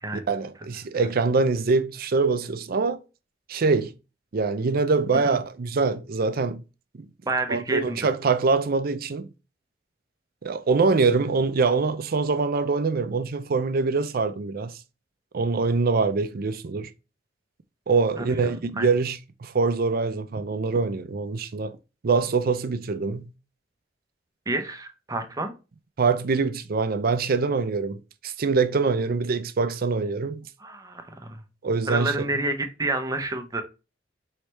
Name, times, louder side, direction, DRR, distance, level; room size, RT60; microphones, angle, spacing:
voice 1, 0.1-3.0 3.5-3.9 4.3-6.6 7.5-9.3 10.4-14.8 15.3-16.9 17.9-21.8 22.0-23.3 26.0-30.5 31.6-32.1, right 4 dB, 55° right, 0.5 m, -24 dB
voice 2, 7.3-8.0 18.2-18.3 18.8-18.9 24.5-25.5 30.6-31.4 31.9-33.6, right 2 dB, 20° right, 0.7 m, -29 dB
4.8 x 3.2 x 3.0 m
head